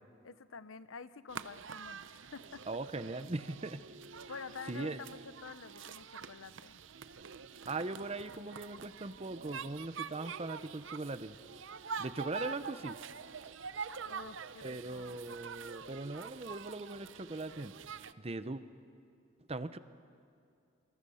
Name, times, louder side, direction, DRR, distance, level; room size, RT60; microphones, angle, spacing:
voice 1, 0.2-2.7 4.3-6.8 14.0-15.2, left 5 dB, 90° left, 15 dB, 0.8 m, -49 dB
sound 1, 1.3-18.1, right 6 dB, 70° right, 0.7 m, -46 dB
voice 2, 2.7-3.8 4.7-5.0 7.7-11.4 12.0-13.0 14.6-18.6 19.5-19.8, right 2 dB, 30° right, 12 dB, 0.8 m, -40 dB
27.5 x 25.5 x 5.7 m, 2.4 s
head